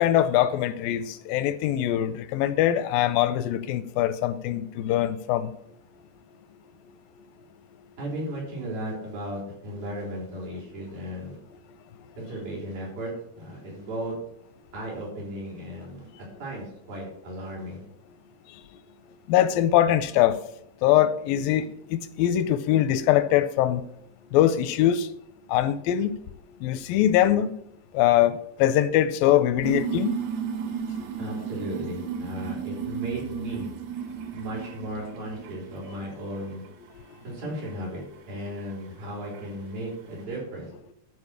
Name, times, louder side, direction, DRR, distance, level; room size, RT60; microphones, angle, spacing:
voice 1, 0.0-5.5 19.3-20.4 20.8-23.8 24.3-25.1 25.5-26.2 26.6-27.5 27.9-30.2 31.0-31.1, left 12 dB, 80° left, 2.3 m, -22 dB
voice 2, 8.0-11.4 12.2-14.1 14.7-17.8 31.2-33.7 34.3-36.6 37.2-40.7, equal, 70° right, 6.4 m, -35 dB
sound 1, 29.6-36.1 36.3-36.9 37.6-37.7 38.6-38.7 39.2-39.5, right 8 dB, 85° right, 3.1 m, -34 dB
12.5 x 4.8 x 8.3 m
omnidirectional pair, 4.3 m